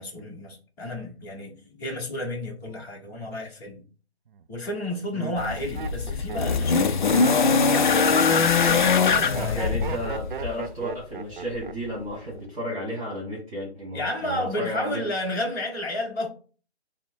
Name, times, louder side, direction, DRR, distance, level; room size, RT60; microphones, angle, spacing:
voice 1, 0.0-3.8 4.5-8.3 9.2-9.8 13.9-16.3, left 1 dB, 10° left, 1.0 m, -32 dB
Laughter, 4.3-4.7 5.4-12.0 12.3-12.8, right 6 dB, 50° right, 0.4 m, -36 dB
sound 1, 5.4-10.6 11.7-11.8, left 5 dB, 45° left, 0.4 m, -22 dB
voice 2, 9.4-15.0, equal, 30° right, 1.5 m, -33 dB
5.7 x 2.1 x 4.4 m
hypercardioid pair, 170°, 33 cm